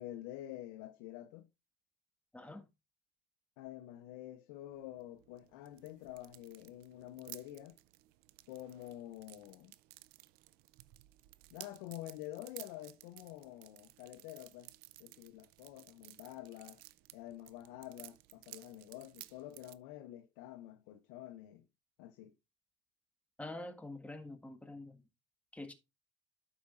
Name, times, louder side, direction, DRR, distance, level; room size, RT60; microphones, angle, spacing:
voice 1, 0.0-1.5 3.6-7.8 8.5-9.7 11.5-14.7 15.0-16.8 17.1-21.6 22.0-22.4, left 14 dB, 85° left, 0.7 m, -48 dB
voice 2, 2.3-2.6 23.4-25.0 25.5-25.7, left 2 dB, 10° left, 1.5 m, -46 dB
sound 1, 4.7-19.7, right 19 dB, 80° right, 0.5 m, -56 dB
12.5 x 4.9 x 2.4 m
supercardioid pair, 95°, 16 cm